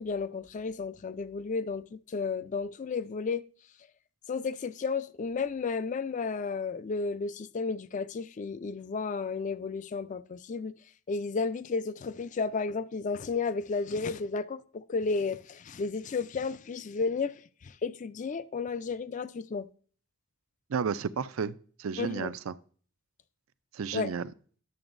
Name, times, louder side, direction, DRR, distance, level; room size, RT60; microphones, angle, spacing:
voice 1, 0.0-3.4 4.3-10.7 11.1-19.7 22.0-22.3 23.9-24.1, left 4 dB, 35° left, 0.3 m, -33 dB
voice 2, 20.7-22.5 23.7-24.3, right 6 dB, 80° right, 0.4 m, -32 dB
10.5 x 6.9 x 2.5 m
head